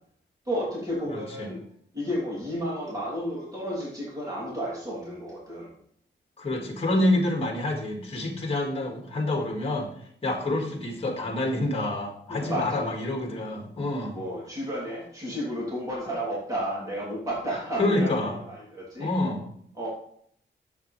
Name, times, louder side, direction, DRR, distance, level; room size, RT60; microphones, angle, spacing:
voice 1, 0.4-1.6 1.9-5.7 12.3-12.9 14.1-18.1 18.4-19.1 19.7-19.9, equal, 15° right, -6 dB, 3.2 m, -32 dB
voice 2, 1.1-1.5 6.4-9.9 10.2-14.2 17.8-18.4 19.0-19.4, left 1 dB, 30° left, 1 dB, 2.2 m, -27 dB
10.5 x 7.9 x 3.4 m, 0.65 s
wide cardioid pair, 165°, 20 cm